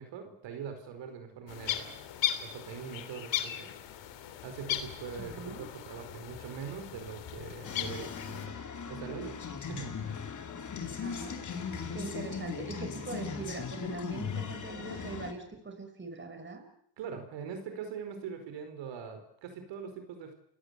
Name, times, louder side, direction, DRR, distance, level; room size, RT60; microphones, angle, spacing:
voice 1, 0.0-1.9 2.4-3.7 4.4-8.5 8.9-10.2 17.0-20.3, right 7 dB, 80° right, 7 dB, 4.9 m, -42 dB
sound 1, 1.5-8.5, left 12 dB, 80° left, 3.1 m, -37 dB
voice 2, 5.2-5.7 11.0-11.5 11.9-16.6, right 3 dB, 25° right, 6 dB, 5.8 m, -42 dB
sound 2, 7.6-15.3, left 6 dB, 45° left, 3.9 m, -38 dB
29.0 x 17.5 x 8.3 m, 0.68 s
cardioid pair, 100°, 43 cm